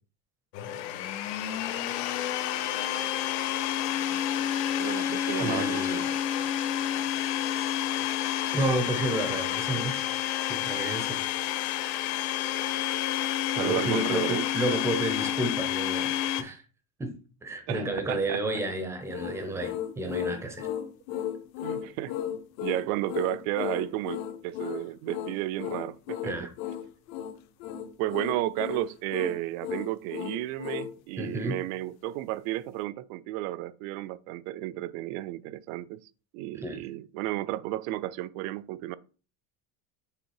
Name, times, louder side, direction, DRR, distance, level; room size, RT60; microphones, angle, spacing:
Domestic sounds home sounds, 0.5-16.4, left 11 dB, 80° left, 1.0 m, -29 dB
voice 1, 4.7-6.1 13.6-14.8 17.7-18.4 21.6-26.5 28.0-36.0 36.3-39.0, right 15 dB, 60° right, 0.5 m, -33 dB
voice 2, 5.4-6.1 8.5-10.1 10.5-11.2 13.6-16.6 17.0-17.1 17.4-20.7 26.2-26.5 31.2-31.6 36.5-36.8, right 1 dB, 5° right, 0.5 m, -31 dB
sound 1, 19.1-30.9, left 10 dB, 55° left, 0.7 m, -35 dB
6.8 x 3.6 x 4.7 m
cardioid pair, 180°, 47 cm